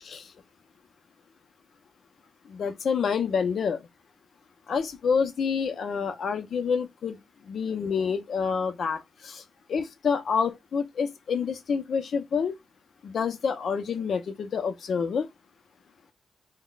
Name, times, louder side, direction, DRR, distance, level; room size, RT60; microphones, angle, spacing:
voice 1, 2.5-3.8 4.7-7.2 7.5-9.4 9.7-12.5 13.0-15.3, left 6 dB, 65° left, 0.5 m, -28 dB
2.2 x 2.1 x 3.8 m
cardioid pair, 100°, 0 cm